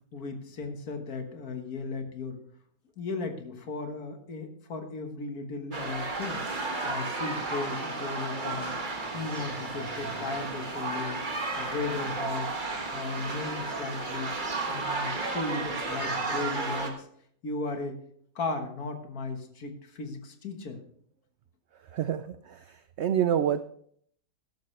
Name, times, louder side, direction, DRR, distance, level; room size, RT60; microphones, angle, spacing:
voice 1, 0.1-2.4 3.0-6.4 6.9-8.7 9.1-11.2 11.6-12.5 12.9-14.3 14.7-17.1 17.4-18.0 18.4-20.8, left 3 dB, 65° left, 6 dB, 1.9 m, -36 dB
sound 1, 5.7-16.9, right 3 dB, 30° right, 1.5 m, -33 dB
voice 2, 21.8-23.6, right 9 dB, 75° right, 12 dB, 0.6 m, -28 dB
13.5 x 11.5 x 3.2 m, 0.64 s
omnidirectional pair, 1.7 m